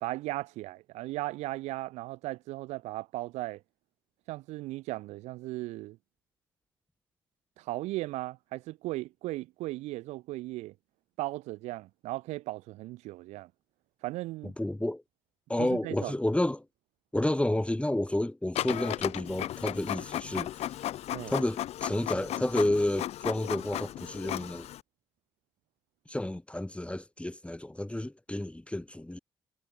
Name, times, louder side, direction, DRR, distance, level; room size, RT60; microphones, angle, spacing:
voice 1, 0.0-3.6 4.3-6.0 7.6-10.7 11.2-13.5 14.0-14.5 15.6-16.1 21.1-21.3, right 18 dB, 75° right, 2.6 m, -37 dB
voice 2, 14.4-15.0 15.5-16.7 17.1-20.8 21.3-24.7 26.1-29.2, left 1 dB, 10° left, 1.7 m, -30 dB
Printer, 18.6-24.8, left 13 dB, 65° left, 1.0 m, -35 dB
hypercardioid pair, 45°, 11 cm